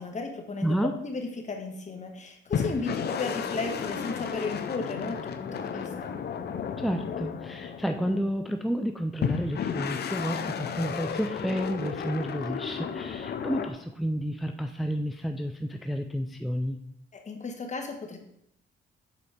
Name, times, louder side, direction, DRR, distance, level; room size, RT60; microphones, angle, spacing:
voice 1, 0.0-6.1 17.1-18.2, left 3 dB, 35° left, 4 dB, 1.4 m, -35 dB
voice 2, 0.6-1.0 6.8-16.8, equal, ahead, 5 dB, 0.4 m, -30 dB
sound 1, 2.5-8.4 9.2-13.7, left 7 dB, 55° left, 0.7 m, -33 dB
7.0 x 4.1 x 5.0 m, 0.75 s
cardioid pair, 90°, 20 cm